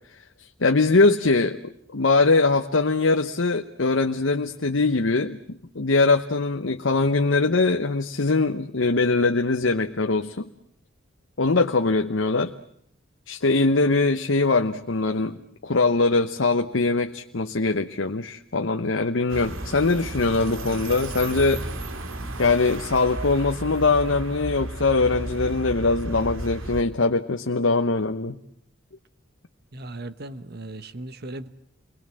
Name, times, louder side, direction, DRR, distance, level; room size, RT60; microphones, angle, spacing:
voice 1, 0.4-10.5 11.4-12.5 13.3-15.4 15.6-21.6 22.4-28.4, left 3 dB, 65° left, 1.0 m, -22 dB
sound 1, 19.3-26.8, right 1 dB, 85° right, 2.3 m, -33 dB
voice 2, 29.7-31.5, right 2 dB, 55° right, 1.3 m, -37 dB
29.0 x 22.0 x 7.6 m
head